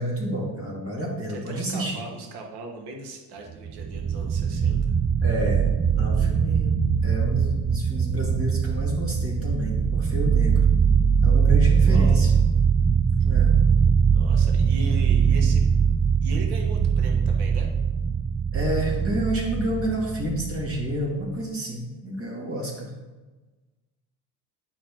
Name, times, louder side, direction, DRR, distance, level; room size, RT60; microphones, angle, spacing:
voice 1, 0.0-2.0 5.2-5.7 6.0-10.6 11.2-12.3 13.2-13.6 18.5-22.9, right 1 dB, 35° right, -3 dB, 2.3 m, -29 dB
voice 2, 1.3-4.9 11.7-12.3 14.0-15.6 16.2-17.7, right 2 dB, 75° right, 2 dB, 1.6 m, -39 dB
sound 1, 3.6-21.0, right 6 dB, 20° right, 0.4 m, -21 dB
9.6 x 5.2 x 3.7 m, 1.2 s
cardioid pair, 100°, 40 cm